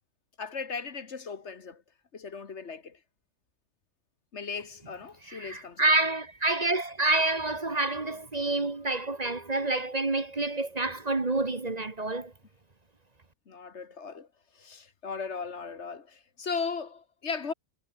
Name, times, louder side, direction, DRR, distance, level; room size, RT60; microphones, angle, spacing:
voice 1, 0.4-1.8 2.1-3.0 4.3-5.9 13.5-14.3 14.6-17.5, left 5 dB, 70° left, 1.9 m, -37 dB
voice 2, 5.3-12.3, right 2 dB, 35° right, 1.5 m, -28 dB
omnidirectional pair, 1.2 m